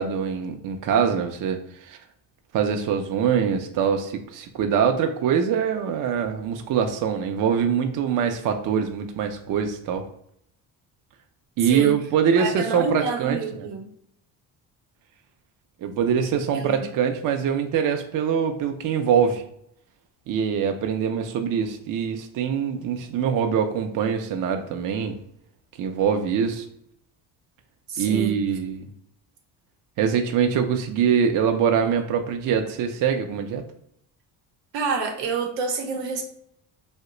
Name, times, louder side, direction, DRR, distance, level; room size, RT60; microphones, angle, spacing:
voice 1, 0.0-2.0 2.5-10.0 11.6-13.7 15.8-19.4 20.3-25.2 25.8-26.6 28.0-28.8 30.0-33.6, right 7 dB, 50° right, 6 dB, 0.5 m, -23 dB
voice 2, 11.6-11.9 12.4-13.9 16.5-16.8 27.9-28.4 34.7-36.2, right 4 dB, 85° right, 3 dB, 0.7 m, -28 dB
2.8 x 2.1 x 3.7 m, 0.71 s
supercardioid pair, 85°, 42 cm